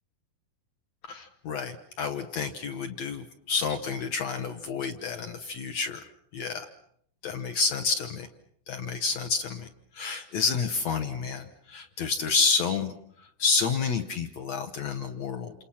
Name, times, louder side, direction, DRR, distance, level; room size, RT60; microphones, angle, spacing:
voice 1, 1.1-6.0 6.3-6.7 7.2-8.3 8.7-9.7 9.9-12.9 13.4-15.5, left 5 dB, 65° left, 7 dB, 1.8 m, -29 dB
28.5 x 27.5 x 5.7 m, 0.66 s
omnidirectional pair, 4.4 m